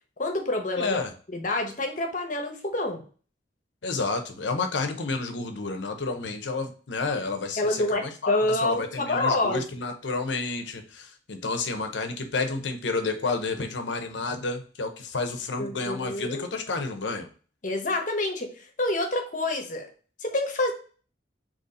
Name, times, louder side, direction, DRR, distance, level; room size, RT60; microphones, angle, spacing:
voice 1, 0.2-1.0 1.3-3.0 7.6-9.6 15.6-16.5 17.6-19.9 20.2-20.7, left 2 dB, 45° left, 4 dB, 0.9 m, -27 dB
voice 2, 0.8-1.1 3.8-17.3, left 3 dB, 80° left, 7 dB, 0.7 m, -30 dB
4.1 x 3.0 x 4.0 m, 0.39 s
head